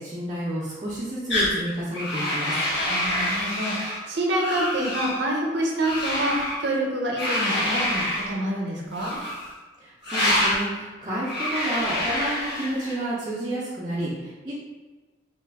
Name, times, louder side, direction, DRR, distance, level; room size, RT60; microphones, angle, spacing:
voice 1, 0.0-2.7 9.8-14.5, right 1 dB, 25° right, -10 dB, 0.4 m, -30 dB
sound 1, 1.3-1.6 1.9-4.0 4.3-5.2 5.8-6.6 7.2-8.3 8.9-9.5 10.0-10.6 11.2-13.0, left 1 dB, 70° left, 1.0 m, -26 dB
voice 2, 2.8-9.2, right 1 dB, 65° right, -2 dB, 0.6 m, -27 dB
2.4 x 2.3 x 3.4 m, 1.3 s
head